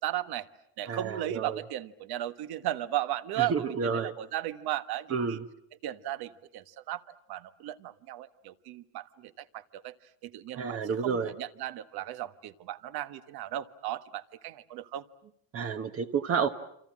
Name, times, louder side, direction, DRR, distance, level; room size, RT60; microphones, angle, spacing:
voice 1, 0.0-0.5 0.8-3.5 3.9-5.4 5.8-10.0 10.2-15.0, right 13 dB, 60° right, 12 dB, 1.5 m, -36 dB
voice 2, 0.9-1.6 3.4-4.1 5.1-5.4 10.5-11.3 15.5-16.5, right 6 dB, 30° right, 7 dB, 1.1 m, -30 dB
28.5 x 27.0 x 7.6 m, 0.75 s
cardioid pair, 145°, 43 cm